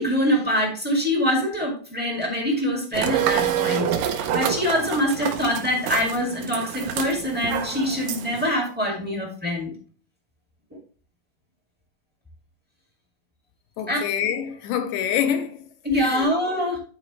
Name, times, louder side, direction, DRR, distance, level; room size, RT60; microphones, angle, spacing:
voice 1, 0.0-9.7 13.9-14.0 15.8-16.8, equal, 5° right, 0.8 m, -24 dB
sound 1, 2.9-8.5, right 9 dB, 80° right, 2.4 m, -27 dB
voice 2, 13.8-15.6 16.0-16.3, left 9 dB, 75° left, 2.2 m, -26 dB
11.0 x 4.4 x 3.0 m
omnidirectional pair, 4.1 m